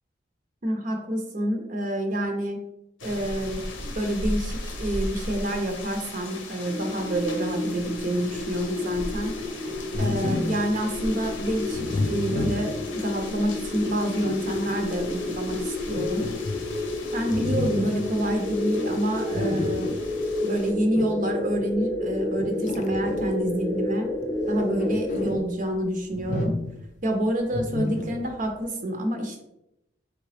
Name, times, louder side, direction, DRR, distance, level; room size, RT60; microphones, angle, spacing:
voice 1, 0.6-2.6 3.0-9.4 10.0-16.3 17.1-19.9 20.4-24.1 24.5-26.6 27.0-29.4, right 1 dB, 40° right, 4 dB, 0.5 m, -28 dB
sound 1, 3.0-20.7, left 1 dB, 85° left, 0.8 m, -38 dB
sound 2, 6.6-25.4, left 2 dB, 10° left, 0.7 m, -31 dB
sound 3, 9.9-10.7 11.7-13.1 13.8-14.8 15.9-16.9 17.3-18.1 19.3-20.1 20.9-21.3 22.4-23.5 24.3-25.5 26.1-26.9 27.5-28.4, left 2 dB, 40° left, 0.3 m, -31 dB
3.8 x 3.3 x 3.2 m, 0.85 s
head